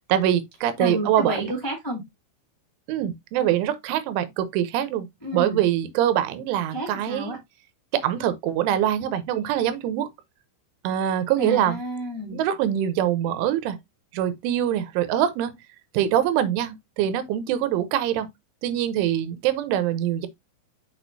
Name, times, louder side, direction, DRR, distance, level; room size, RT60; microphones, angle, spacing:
voice 1, 0.1-1.5 2.9-5.1 5.3-7.4 7.9-10.1 10.8-11.8 12.3-13.8 14.1-15.6 15.9-18.3 18.6-20.3, right 11 dB, 80° right, 3.2 m, -24 dB
voice 2, 0.8-2.0 5.2-5.6 6.7-7.4 11.4-12.4, equal, 10° left, 1.1 m, -30 dB
6.4 x 6.3 x 2.7 m
omnidirectional pair, 5.6 m